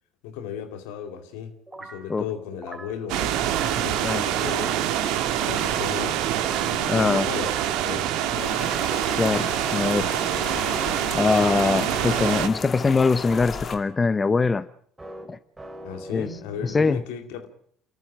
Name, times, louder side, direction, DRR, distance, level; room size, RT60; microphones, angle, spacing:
voice 1, 0.2-4.8 5.4-7.5 7.8-8.6 15.8-17.5, left 8 dB, 70° left, 2.6 m, -36 dB
sound 1, 1.7-2.1 2.5-3.0 3.4-3.9 4.4-4.9 5.3-5.8 6.3-6.8 7.3-7.8 8.3-9.0 10.4-13.7 15.0-16.9, right 2 dB, 15° right, 3.0 m, -41 dB
sound 2, 3.1-12.5, right 11 dB, 65° right, 1.7 m, -25 dB
voice 2, 6.8-7.2 9.2-10.2 10.5-10.7 11.1-14.7 15.3-15.4 16.1-16.3 16.6-17.0, left 4 dB, 25° left, 0.8 m, -22 dB
Rain, 8.4-13.8, left 6 dB, 40° left, 2.5 m, -36 dB
28.0 x 14.0 x 7.5 m
hypercardioid pair, 60°, 0 cm